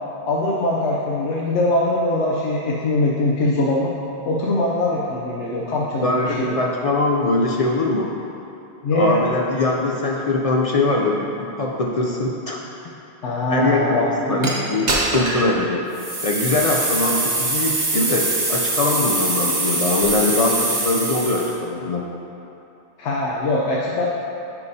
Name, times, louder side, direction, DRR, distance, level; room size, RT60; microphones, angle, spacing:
voice 1, 0.2-3.9 4.3-6.5 8.8-9.2 13.2-14.5 23.0-24.1, left 2 dB, 90° left, -4 dB, 1.0 m, -22 dB
voice 2, 6.0-8.1 8.9-12.9 13.5-14.0 14.3-15.9 16.2-22.1, left 2 dB, 60° left, -1 dB, 0.3 m, -22 dB
sound 1, 14.4-14.5 14.9-15.5 15.9-21.5, right 2 dB, 40° right, 1.1 m, -23 dB
10.5 x 4.6 x 2.7 m, 2.8 s
omnidirectional pair, 1.1 m